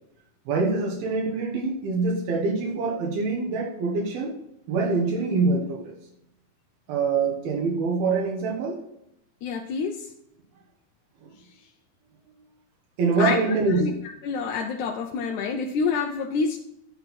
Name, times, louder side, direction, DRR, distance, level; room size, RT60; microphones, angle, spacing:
voice 1, 0.5-4.3 4.7-5.9 6.9-8.8 11.2-11.3 13.0-14.0, right 3 dB, 85° right, -1 dB, 3.4 m, -25 dB
voice 2, 9.4-10.0 13.2-13.5 13.8-13.9 14.2-16.6, left 5 dB, 75° left, 2 dB, 1.8 m, -27 dB
11.5 x 4.3 x 6.1 m, 0.81 s
omnidirectional pair, 4.2 m